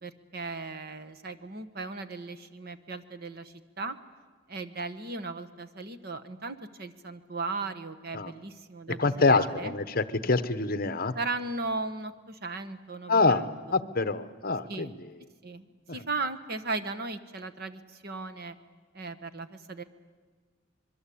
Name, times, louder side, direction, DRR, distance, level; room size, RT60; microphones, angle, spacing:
voice 1, 0.0-4.0 4.5-9.7 11.1-13.5 14.7-14.9 15.4-18.6 18.9-19.8, right 3 dB, 50° right, 10 dB, 1.3 m, -37 dB
voice 2, 9.0-11.2 13.1-13.5 13.7-14.9, left 3 dB, 50° left, 13 dB, 1.0 m, -25 dB
25.5 x 22.5 x 8.6 m, 1.4 s
head